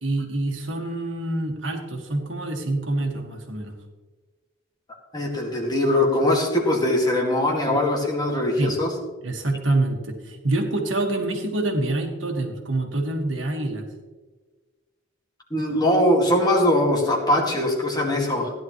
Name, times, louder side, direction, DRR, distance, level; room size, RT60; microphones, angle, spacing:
voice 1, 0.0-3.7 8.6-8.8 9.2-13.9, right 2 dB, 75° right, 3 dB, 1.9 m, -26 dB
voice 2, 5.1-8.9 15.5-18.5, left 1 dB, 20° left, -1 dB, 2.1 m, -21 dB
15.0 x 10.5 x 3.2 m, 1.3 s
head